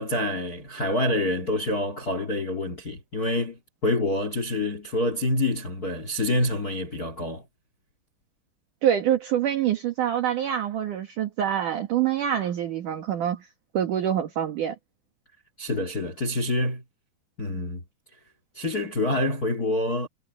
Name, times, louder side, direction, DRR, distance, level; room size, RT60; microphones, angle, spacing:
voice 1, 0.0-7.4 15.6-16.8 17.4-17.8 18.5-20.1, left 1 dB, 75° left, 0.8 m, -27 dB
voice 2, 8.8-13.5 13.7-14.8, right 10 dB, 55° right, 2.6 m, -25 dB
omnidirectional pair, 5.5 m